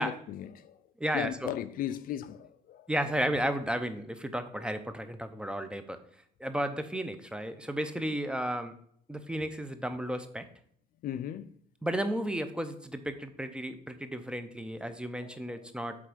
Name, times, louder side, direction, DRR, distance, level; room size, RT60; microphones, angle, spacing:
voice 1, 0.0-0.8 1.1-2.9 11.0-11.6 15.2-15.6, left 11 dB, 55° left, 0.4 m, -37 dB
voice 2, 1.0-1.5 2.9-6.0 6.4-8.7 9.1-10.5 11.8-16.1, right 1 dB, 5° right, 0.7 m, -33 dB
7.9 x 3.7 x 5.1 m
cardioid pair, 110°, 17 cm